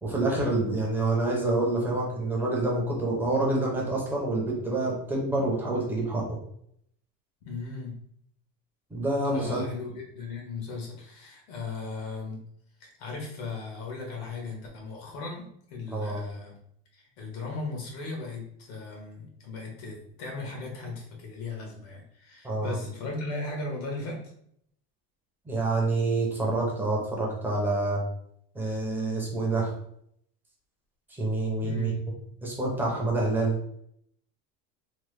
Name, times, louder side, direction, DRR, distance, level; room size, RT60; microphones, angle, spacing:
voice 1, 0.0-6.2 8.9-9.6 15.9-16.2 22.4-22.7 25.5-28.0 28.5-29.7 31.1-31.9 32.4-33.6, right 2 dB, 5° right, -3 dB, 0.5 m, -27 dB
voice 2, 0.8-1.2 7.4-8.0 9.3-12.4 12.8-16.6 16.9-24.2 31.6-32.0, left 3 dB, 90° left, -1 dB, 1.2 m, -37 dB
3.2 x 2.0 x 3.1 m, 0.70 s
cardioid pair, 170°, 30 cm